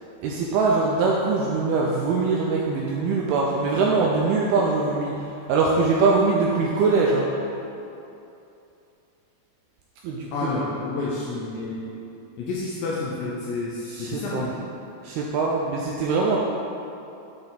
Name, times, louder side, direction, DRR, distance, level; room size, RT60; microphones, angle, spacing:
voice 1, 0.2-5.1 5.5-7.3 10.0-10.5 13.9-14.5 15.0-16.4, right 4 dB, 85° right, -2 dB, 2.2 m, -22 dB
voice 2, 10.3-11.9 12.4-14.6, left 3 dB, 80° left, -5 dB, 2.0 m, -29 dB
10.5 x 3.9 x 4.0 m, 2.7 s
omnidirectional pair, 5.0 m